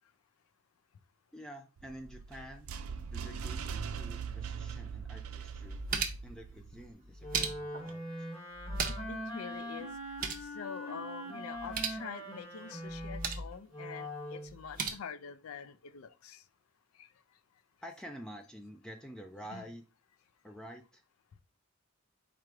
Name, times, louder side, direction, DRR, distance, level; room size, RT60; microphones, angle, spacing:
voice 1, 1.3-2.7 3.1-8.1 17.8-19.8 20.4-21.0, equal, 5° left, 0.3 m, -49 dB
sound 1, 1.8-6.9, right 6 dB, 90° right, 0.4 m, -41 dB
sound 2, 4.9-5.0 5.5-6.4 7.0-7.9 8.5-9.2 9.5-9.6 9.9-10.5 11.5-12.0 12.9-13.5 14.5-14.9, right 5 dB, 40° right, 0.7 m, -37 dB
Wind instrument woodwind instrument, 7.2-14.6, equal, 30° left, 1.4 m, -42 dB
voice 2, 8.8-9.9 10.4-16.4 17.0-17.1 19.5-19.7, left 7 dB, 80° left, 0.4 m, -45 dB
4.7 x 2.5 x 4.5 m
head